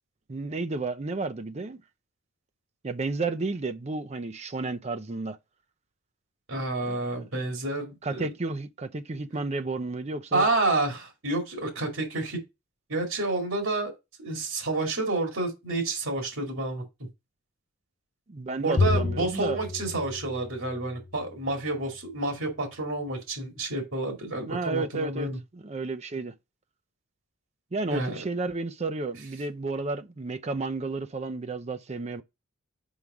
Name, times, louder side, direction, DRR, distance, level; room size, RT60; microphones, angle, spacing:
voice 1, 0.3-1.8 2.8-5.4 6.8-7.0 8.0-10.5 18.3-19.6 24.5-26.3 27.7-32.2, right 3 dB, 35° right, 0.5 m, -32 dB
voice 2, 6.5-8.3 10.3-12.4 12.9-13.9 14.2-16.8 18.6-25.4 27.9-28.2, right 2 dB, 90° right, 2.3 m, -29 dB
Bowed string instrument, 18.8-21.3, left 3 dB, 40° left, 0.5 m, -30 dB
5.5 x 4.7 x 4.8 m
head